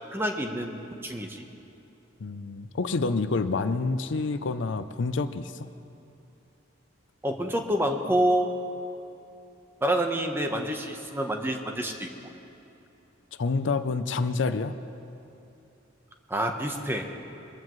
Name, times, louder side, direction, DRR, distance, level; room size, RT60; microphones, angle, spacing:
voice 1, 0.1-1.4 7.2-8.5 9.8-12.1 16.3-17.1, right 1 dB, 10° right, 4 dB, 0.9 m, -27 dB
voice 2, 2.2-5.7 13.4-14.7, left 3 dB, 65° left, 11 dB, 0.5 m, -28 dB
23.0 x 14.5 x 3.1 m, 2.8 s
head